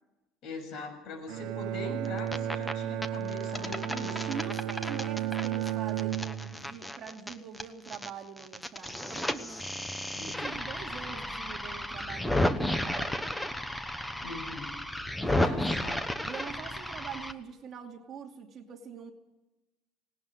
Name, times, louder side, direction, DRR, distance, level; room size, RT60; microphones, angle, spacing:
voice 1, 0.4-4.3 10.1-10.5 14.2-14.7 15.4-16.0, left 3 dB, 55° left, 5 dB, 7.1 m, -41 dB
Bowed string instrument, 1.3-6.7, right 11 dB, 75° right, 1.2 m, -33 dB
sound 1, 2.0-2.7 3.0-8.1 8.4-17.3, left 1 dB, 5° left, 1.0 m, -33 dB
voice 2, 4.3-9.5 10.2-13.5 15.2-15.6 16.2-19.1, right 7 dB, 40° right, 2 dB, 2.5 m, -44 dB
19.5 x 18.0 x 7.9 m, 0.96 s
cardioid pair, 150°, 0 cm